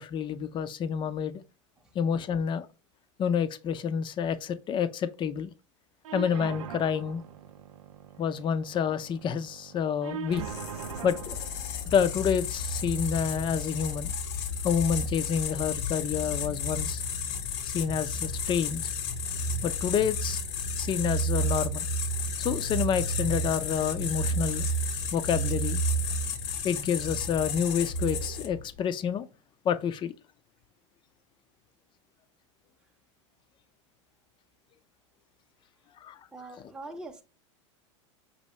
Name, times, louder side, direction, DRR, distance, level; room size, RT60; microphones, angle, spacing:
voice 1, 0.0-1.4 1.9-2.7 3.2-5.5 6.1-7.2 8.2-10.4 11.0-11.4 11.9-14.1 14.6-17.0 17.6-18.8 19.6-20.4 20.8-21.9 22.4-24.7 25.1-25.8 26.6-29.2 29.6-30.1 36.0-36.2, left 7 dB, 30° left, 0.5 m, -28 dB
sound 1, 6.0-14.0, right 8 dB, 85° right, 0.5 m, -43 dB
sound 2, 10.3-28.7, left 1 dB, 65° left, 0.8 m, -31 dB
voice 2, 36.3-37.2, right 2 dB, 5° right, 0.7 m, -43 dB
5.4 x 2.6 x 3.1 m
hypercardioid pair, 110°, 16 cm